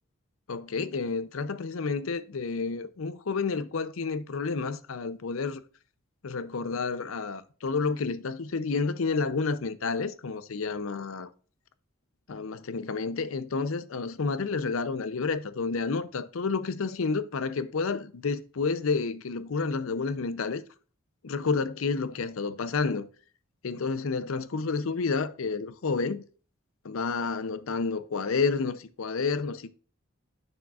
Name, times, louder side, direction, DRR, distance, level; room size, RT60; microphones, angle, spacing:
voice 1, 0.5-5.6 6.2-11.3 12.3-20.6 21.2-23.1 23.6-26.2 26.8-29.7, left 4 dB, 80° left, 0.6 m, -30 dB
8.5 x 6.4 x 2.4 m
head